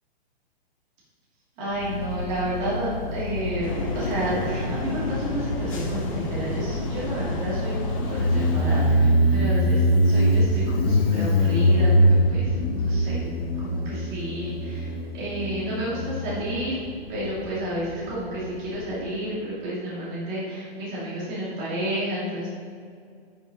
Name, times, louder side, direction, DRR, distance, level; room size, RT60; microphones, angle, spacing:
voice 1, 1.6-13.2 13.6-16.8 17.1-22.5, equal, 20° right, -8 dB, 2.5 m, -31 dB
Motorcycle, 1.7-18.9, equal, 65° left, 1.7 m, -24 dB
sound 1, 3.6-9.0, left 2 dB, 30° left, 1.3 m, -32 dB
8.5 x 6.8 x 5.2 m, 2.2 s
hypercardioid pair, 175°, 32 cm